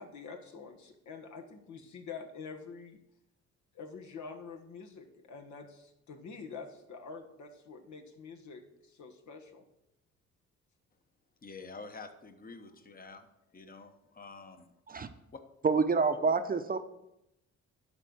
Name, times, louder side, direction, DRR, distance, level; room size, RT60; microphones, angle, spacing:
voice 1, 0.0-3.0 3.7-9.6, left 5 dB, 70° left, 3 dB, 1.4 m, -46 dB
voice 2, 11.4-13.3 13.5-14.7 15.3-15.4, left 4 dB, 30° left, 7 dB, 1.1 m, -48 dB
voice 3, 15.6-16.8, right 4 dB, 30° right, 8 dB, 0.7 m, -27 dB
11.0 x 4.1 x 6.2 m, 0.86 s
cardioid pair, 90°, 30 cm